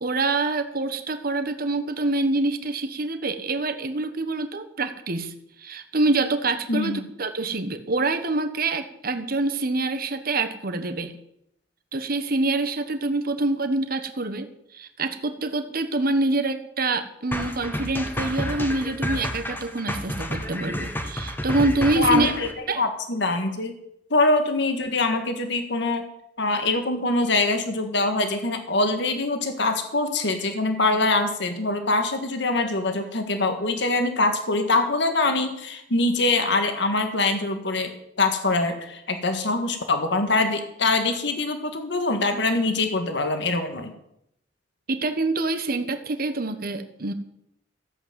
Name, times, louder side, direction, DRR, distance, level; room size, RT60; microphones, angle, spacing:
voice 1, 0.0-5.3 5.6-11.1 11.9-22.3 22.7-22.8 44.9-47.1, right 2 dB, 55° right, 8 dB, 1.3 m, -26 dB
voice 2, 6.7-7.0 22.0-23.7 24.1-26.0 26.4-37.9 38.2-43.9, left 2 dB, 70° left, 6 dB, 1.7 m, -24 dB
sound 1, 17.3-22.5, equal, 10° left, 1.5 m, -30 dB
14.5 x 8.4 x 7.7 m, 0.78 s
head